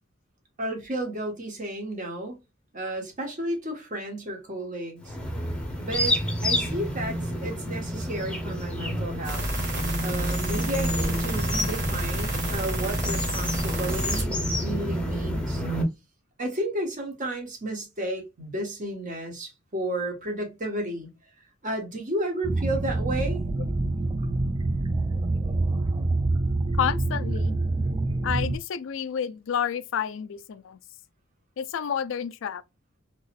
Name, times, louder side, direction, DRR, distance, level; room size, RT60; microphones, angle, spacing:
voice 1, 0.6-2.4 2.7-5.1 5.8-9.4 10.0-15.6 16.4-21.1 21.6-23.4, right 1 dB, 40° right, 1.3 m, -32 dB
sound 1, 5.0-15.8, equal, 5° left, 0.8 m, -29 dB
sound 2, 9.2-14.2, right 1 dB, 60° right, 1.4 m, -30 dB
sound 3, 22.4-28.6, right 2 dB, 20° right, 0.3 m, -26 dB
voice 2, 26.8-27.6 28.2-30.8 31.6-32.6, left 8 dB, 65° left, 0.4 m, -30 dB
4.0 x 3.0 x 2.4 m
head